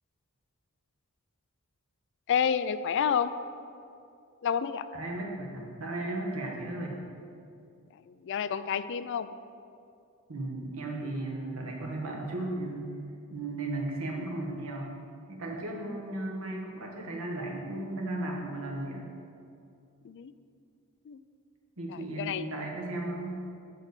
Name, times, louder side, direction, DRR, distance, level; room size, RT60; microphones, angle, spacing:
voice 1, 2.3-3.3 4.4-4.9 8.1-9.3 20.0-20.3 21.1-21.2 22.2-22.5, left 7 dB, 55° left, 13 dB, 0.3 m, -29 dB
voice 2, 4.9-7.0 10.3-12.9 13.3-14.9 15.3-19.1 21.8-23.4, right 2 dB, 70° right, -1 dB, 1.2 m, -35 dB
8.9 x 4.0 x 6.8 m, 2.5 s
head